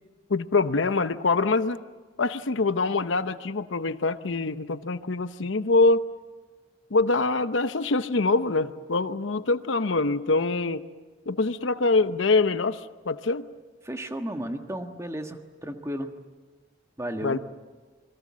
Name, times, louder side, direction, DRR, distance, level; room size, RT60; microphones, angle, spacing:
voice 1, 0.3-1.8 2.2-6.0 6.9-10.8 11.3-12.8 13.1-13.5 17.2-17.4, left 3 dB, 80° left, 12 dB, 0.8 m, -24 dB
voice 2, 13.8-16.1 17.0-17.4, right 1 dB, 15° right, 5 dB, 1.5 m, -33 dB
28.0 x 22.0 x 7.5 m, 1.4 s
head